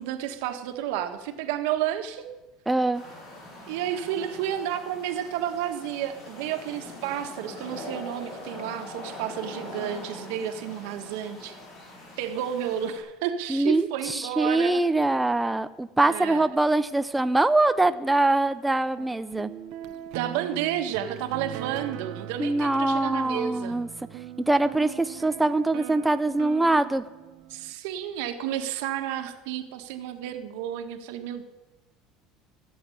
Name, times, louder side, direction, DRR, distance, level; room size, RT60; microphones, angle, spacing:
voice 1, 0.0-2.3 3.7-11.5 12.2-14.8 16.0-16.5 20.1-23.8 27.5-31.4, right 10 dB, 85° right, 7 dB, 1.6 m, -31 dB
voice 2, 2.7-3.0 13.5-19.5 22.4-23.9 24.5-27.0, right 2 dB, 5° right, 10 dB, 0.5 m, -23 dB
sound 1, 2.9-13.0, left 2 dB, 55° left, 7.1 m, -42 dB
sound 2, 18.9-27.7, right 12 dB, 60° right, 0.7 m, -41 dB
15.5 x 7.9 x 10.0 m, 1.1 s
cardioid pair, 150°, 0 cm